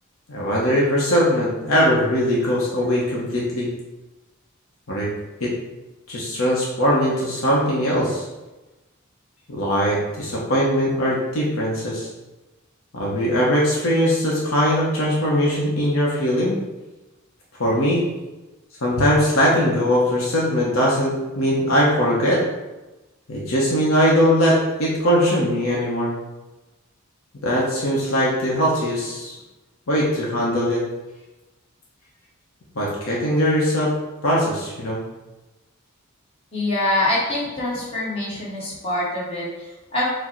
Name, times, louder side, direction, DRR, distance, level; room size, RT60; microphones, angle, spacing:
voice 1, 0.3-3.7 4.9-5.1 5.4-5.5 6.1-8.2 9.5-12.1 12.9-16.6 17.6-18.0 18.8-22.4 23.3-26.1 27.4-29.4 29.9-30.8 32.8-33.9 34.2-35.0, equal, 70° left, -4 dB, 0.8 m, -20 dB
voice 2, 36.5-40.1, left 1 dB, 30° left, -7 dB, 1.4 m, -25 dB
4.7 x 2.2 x 4.4 m, 1.1 s
head